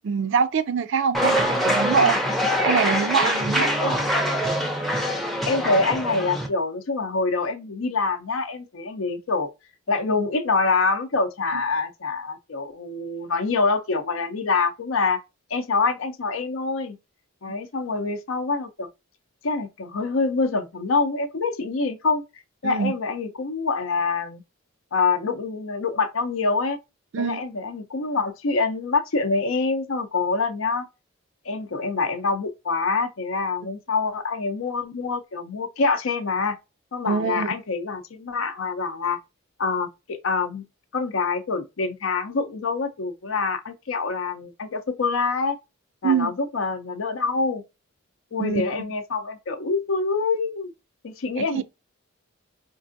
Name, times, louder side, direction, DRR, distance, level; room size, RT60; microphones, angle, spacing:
voice 1, 0.0-2.2 2.6-3.7 11.5-11.6 22.6-22.9 27.1-27.4 37.0-37.5 46.0-46.3 48.4-48.7 51.4-51.6, right 6 dB, 60° right, 0.3 m, -24 dB
sound 1, 1.1-6.5, equal, ahead, 0.5 m, -24 dB
voice 2, 5.5-9.5 9.9-15.2 15.5-17.0 17.4-18.9 19.4-22.2 22.6-24.4 24.9-26.8 27.2-30.9 31.5-36.6 36.9-39.2 39.6-40.6 40.9-45.6 46.0-47.6 48.3-50.7 51.0-51.6, left 4 dB, 70° left, 0.6 m, -25 dB
4.5 x 2.5 x 2.5 m
head